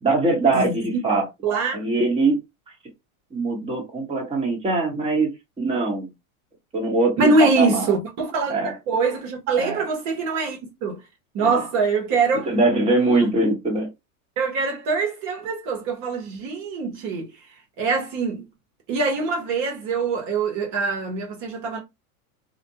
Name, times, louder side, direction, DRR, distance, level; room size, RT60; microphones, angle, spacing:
voice 1, 0.0-1.3 1.7-2.4 3.3-5.3 5.6-6.1 6.7-7.9 8.5-8.7 9.6-9.8 11.4-11.6 12.5-13.9, right 3 dB, 15° right, 1.0 m, -22 dB
voice 2, 0.5-1.0 1.4-1.9 7.2-11.0 11.3-12.6 12.9-13.3 14.4-17.3 17.8-18.4 18.9-21.8, right 4 dB, 45° right, 0.9 m, -24 dB
2.5 x 2.1 x 2.7 m
supercardioid pair, 125°, 44 cm